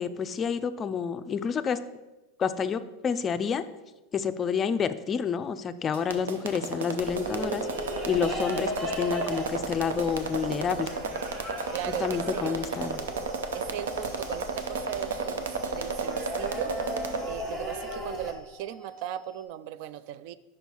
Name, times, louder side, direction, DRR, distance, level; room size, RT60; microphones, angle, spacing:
voice 1, 0.0-1.8 2.4-3.6 4.1-7.7 8.1-10.9 12.0-13.0, left 6 dB, 30° left, 12 dB, 0.4 m, -29 dB
sound 1, 5.9-17.2, right 4 dB, 90° right, 0.7 m, -32 dB
sound 2, 7.0-18.3, equal, 30° right, 1.7 m, -37 dB
voice 2, 11.7-12.5 13.5-16.7 17.3-20.3, right 11 dB, 65° right, 15 dB, 0.3 m, -37 dB
sound 3, 12.9-19.5, right 2 dB, 5° right, 1.2 m, -51 dB
5.4 x 5.1 x 4.5 m, 1.1 s
hypercardioid pair, 105°, 0 cm